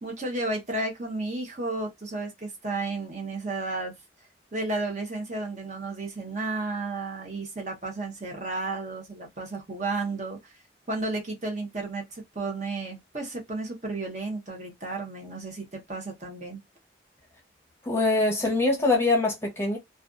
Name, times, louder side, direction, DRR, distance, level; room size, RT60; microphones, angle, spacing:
voice 1, 0.0-3.9 4.5-10.5 10.9-16.6, right 2 dB, 40° right, 0.7 m, -33 dB
voice 2, 17.8-19.8, left 2 dB, 15° left, 0.7 m, -23 dB
2.4 x 2.3 x 2.4 m
head